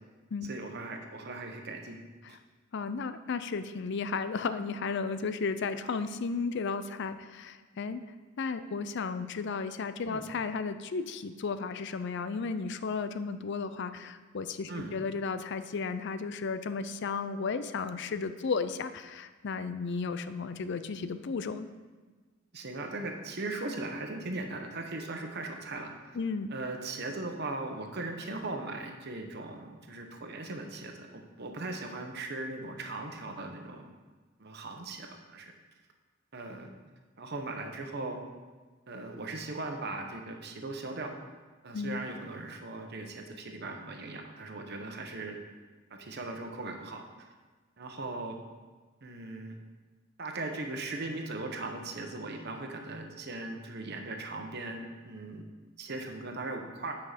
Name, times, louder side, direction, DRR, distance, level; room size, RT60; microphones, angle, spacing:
voice 1, 0.4-2.0 2.3-2.4 10.1-10.3 14.7-14.9 22.5-26.2 26.5-33.8 34.4-35.5 36.3-36.7 37.2-38.2 38.9-41.1 41.6-45.4 45.9-47.0 47.8-48.3 49.0-49.6 50.2-55.4 55.8-56.9, right 2 dB, 55° right, 3 dB, 1.1 m, -39 dB
voice 2, 2.7-8.0 8.4-21.7 26.1-26.5 41.7-42.0, left 4 dB, 60° left, 11 dB, 0.5 m, -34 dB
8.9 x 5.7 x 5.1 m, 1.3 s
head